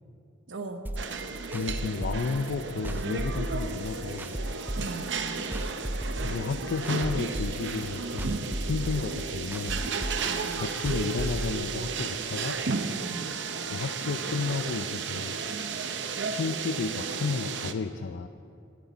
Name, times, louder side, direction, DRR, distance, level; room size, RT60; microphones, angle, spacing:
voice 1, 0.5-0.9 4.7-5.1 10.2-10.7 12.9-13.3, right 3 dB, 90° right, 6 dB, 1.0 m, -39 dB
sound 1, 0.9-11.5, right 1 dB, 10° right, 0.4 m, -34 dB
sound 2, 1.0-17.7, right 5 dB, 70° right, 0.7 m, -33 dB
voice 2, 1.5-4.4 6.2-10.0 10.6-12.6 13.7-15.4 16.3-18.3, left 4 dB, 75° left, 9 dB, 0.5 m, -32 dB
19.0 x 9.7 x 4.1 m, 2.5 s
head